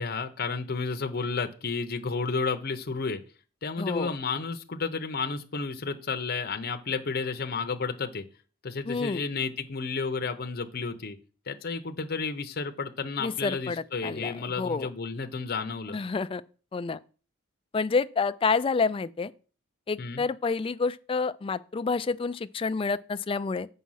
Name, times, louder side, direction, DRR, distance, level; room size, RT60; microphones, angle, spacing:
voice 1, 0.0-3.2 3.6-8.2 8.6-11.2 11.5-16.0 20.0-20.2, left 4 dB, 45° left, 0.7 m, -32 dB
voice 2, 3.8-4.1 8.9-9.2 13.2-14.9 15.9-16.4 16.7-17.0 17.7-19.3 19.9-23.7, left 4 dB, 25° left, 0.3 m, -28 dB
7.3 x 5.6 x 5.6 m
head